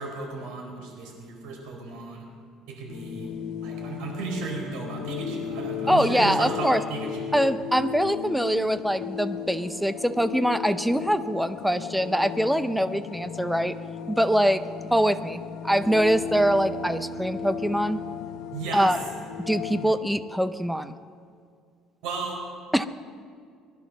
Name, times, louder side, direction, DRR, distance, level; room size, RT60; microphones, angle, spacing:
voice 1, 0.0-2.2 2.7-3.3 3.6-7.3 18.5-18.9 22.0-22.4, right 4 dB, 75° right, 0 dB, 4.5 m, -34 dB
sound 1, 2.9-20.0, left 8 dB, 75° left, 0.9 m, -36 dB
Brass instrument, 3.7-7.8, equal, 15° left, 2.6 m, -42 dB
voice 2, 5.9-6.8 7.3-13.8 14.1-14.6 14.9-18.0 18.7-19.0 19.4-20.9 22.7-22.9, equal, ahead, 11 dB, 0.5 m, -23 dB
Bass guitar, 15.8-20.1, left 1 dB, 35° left, 3.6 m, -36 dB
20.0 x 11.5 x 6.3 m, 2.2 s
cardioid pair, 160°, 0 cm